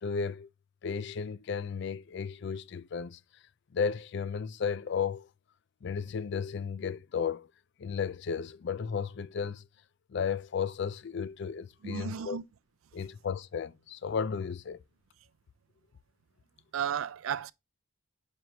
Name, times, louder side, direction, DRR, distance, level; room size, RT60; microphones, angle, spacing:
voice 1, 0.0-0.5 0.8-3.2 3.7-5.3 5.8-7.5 7.8-9.7 10.1-12.4 12.9-14.8, left 6 dB, 55° left, 0.4 m, -34 dB
voice 2, 11.8-12.4 16.7-17.5, right 8 dB, 75° right, 0.4 m, -33 dB
9.3 x 4.5 x 2.8 m
head